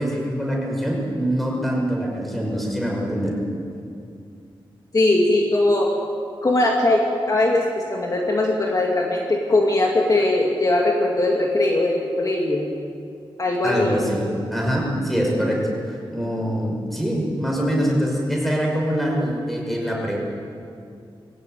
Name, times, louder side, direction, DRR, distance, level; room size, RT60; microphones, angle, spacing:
voice 1, 0.0-3.3 13.6-15.6 15.9-20.2, equal, ahead, -2 dB, 5.8 m, -24 dB
voice 2, 4.9-5.9 6.4-12.7 13.4-14.0, left 2 dB, 40° left, -1 dB, 2.3 m, -20 dB
22.5 x 17.0 x 9.3 m, 2.4 s
wide cardioid pair, 145°, 9 cm